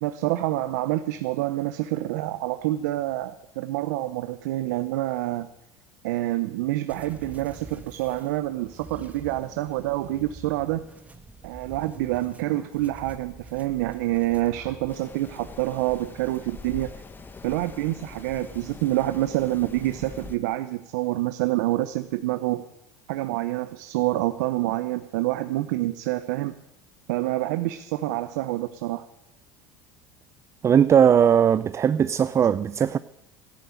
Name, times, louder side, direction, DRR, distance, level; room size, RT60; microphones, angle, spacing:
voice 1, 0.0-5.5 6.0-10.8 11.4-16.9 17.4-22.6 23.1-26.5 27.1-29.0, right 16 dB, 80° right, 0.7 m, -27 dB
sound 1, 6.9-14.9, right 3 dB, 15° right, 1.3 m, -46 dB
Rain, 14.9-20.4, left 4 dB, 20° left, 1.2 m, -43 dB
voice 2, 30.6-33.0, right 8 dB, 30° right, 0.5 m, -19 dB
13.0 x 11.0 x 9.0 m
supercardioid pair, 95°, 9 cm